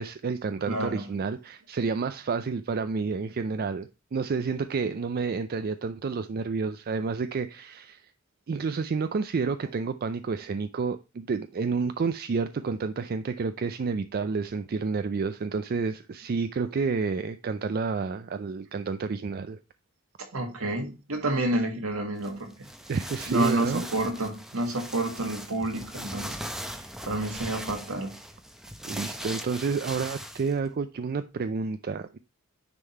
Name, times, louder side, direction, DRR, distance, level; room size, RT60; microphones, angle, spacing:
voice 1, 0.0-8.1 8.5-19.6 22.9-23.8 27.2-27.3 28.8-32.2, right 4 dB, 45° right, 0.4 m, -30 dB
voice 2, 0.7-1.1 20.2-22.7 23.3-26.5 27.0-28.2, right 1 dB, 65° right, 1.7 m, -29 dB
sound 1, 22.2-30.6, equal, ahead, 0.6 m, -40 dB
9.8 x 3.7 x 4.4 m
head